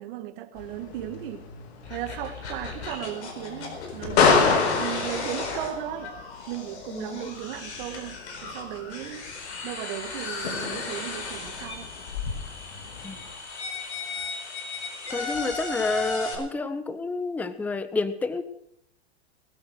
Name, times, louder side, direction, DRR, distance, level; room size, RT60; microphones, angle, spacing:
voice 1, 0.0-1.5 1.9-6.1 6.5-9.3 9.6-11.9, right 12 dB, 50° right, 1.8 m, -36 dB
sound 1, 0.6-13.4, left 5 dB, 70° left, 3.0 m, -30 dB
sound 2, 1.8-16.3, left 3 dB, 85° left, 4.4 m, -36 dB
voice 2, 6.9-7.3 13.0-13.2 15.1-18.4, left 3 dB, 5° left, 0.7 m, -29 dB
20.0 x 8.6 x 6.4 m
hypercardioid pair, 130°, 33 cm